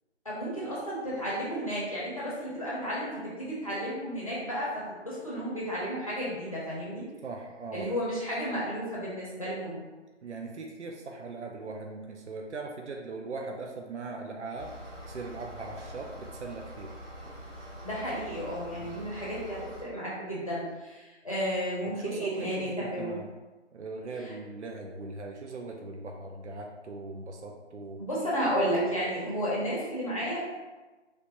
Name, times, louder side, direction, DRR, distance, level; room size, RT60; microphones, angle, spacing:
voice 1, 0.2-7.0 7.7-9.8 17.8-23.2 24.2-24.3 28.0-30.4, equal, 30° left, -7 dB, 0.8 m, -32 dB
voice 2, 7.2-7.9 10.2-14.7 15.1-16.9 18.7-18.9 21.9-23.3 23.7-28.0, right 3 dB, 70° right, 1 dB, 0.5 m, -39 dB
sound 1, 14.6-19.8, equal, 30° right, 1.4 m, -44 dB
3.2 x 2.6 x 3.0 m, 1.2 s
figure-of-eight pair, 165°, 36 cm